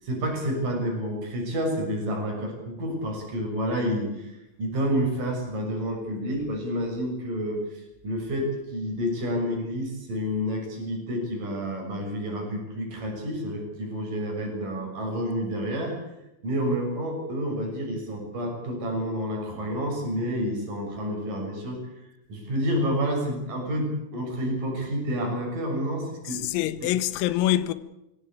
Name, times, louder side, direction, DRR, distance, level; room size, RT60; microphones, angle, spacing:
voice 1, 0.0-16.0 16.4-26.4, equal, 40° right, 8.0 m, -29 dB
voice 2, 26.3-27.7, left 13 dB, 90° left, 3.8 m, -25 dB
26.0 x 17.5 x 8.7 m
omnidirectional pair, 5.9 m